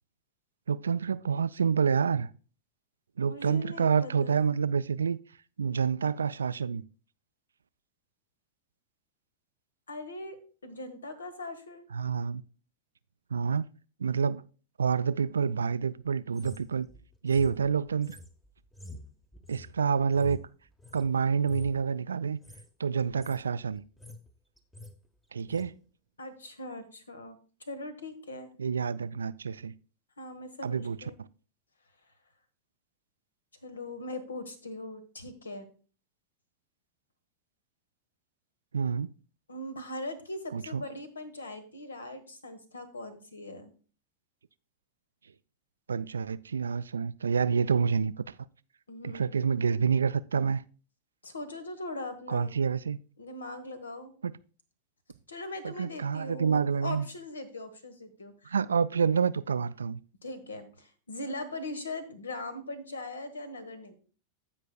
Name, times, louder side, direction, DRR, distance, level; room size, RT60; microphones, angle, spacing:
voice 1, 0.7-2.3 3.2-5.2 5.6-6.8 11.9-12.4 13.3-13.7 14.0-14.4 14.8-16.9 17.2-18.2 19.5-20.4 20.9-22.4 22.8-23.8 25.3-25.7 28.6-29.7 30.6-31.0 38.7-39.1 40.5-40.8 45.9-48.3 49.0-50.6 52.3-53.0 54.2-54.3 55.6-57.1 58.5-60.0, right 6 dB, 70° right, 0.3 m, -28 dB
voice 2, 3.2-4.5 9.9-11.9 26.2-28.5 30.2-31.2 33.6-35.7 39.5-43.7 48.9-49.3 51.2-52.6 53.2-54.1 55.3-58.5 60.2-63.9, left 2 dB, 75° left, 1.3 m, -40 dB
sound 1, 16.3-21.1 21.4-21.8 22.3-22.7 23.0-23.4 23.8-24.3 24.6-25.0 25.5-25.7, left 1 dB, 5° left, 0.9 m, -47 dB
15.5 x 5.3 x 2.2 m
figure-of-eight pair, 90°, 0 cm